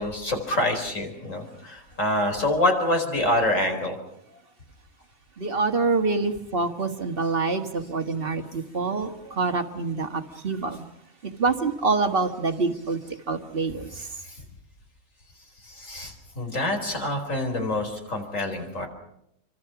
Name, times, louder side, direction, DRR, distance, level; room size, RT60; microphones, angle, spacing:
voice 1, 0.0-4.0 14.2-14.4 15.6-18.9, left 1 dB, 60° left, 5.0 m, -26 dB
voice 2, 5.4-10.8 11.4-13.0 13.3-13.9, right 4 dB, 40° right, 1.9 m, -26 dB
28.5 x 25.0 x 6.0 m
omnidirectional pair, 1.5 m